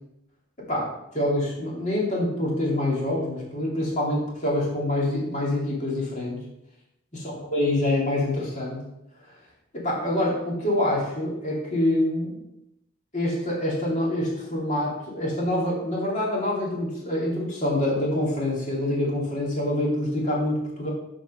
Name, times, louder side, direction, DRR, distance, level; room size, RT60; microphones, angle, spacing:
voice 1, 0.7-6.4 7.1-8.8 9.7-12.4 13.1-20.9, left 1 dB, 35° left, -3 dB, 2.4 m, -26 dB
7.6 x 4.5 x 5.5 m, 0.86 s
head